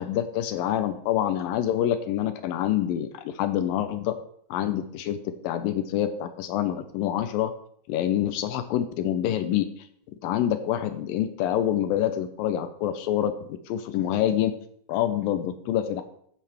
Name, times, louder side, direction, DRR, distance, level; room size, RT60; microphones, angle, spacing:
voice 1, 0.0-4.1 4.5-7.5 7.9-9.9 10.2-14.5 14.9-16.0, left 11 dB, 80° left, 10 dB, 2.1 m, -26 dB
13.0 x 8.5 x 3.4 m, 0.65 s
omnidirectional pair, 4.6 m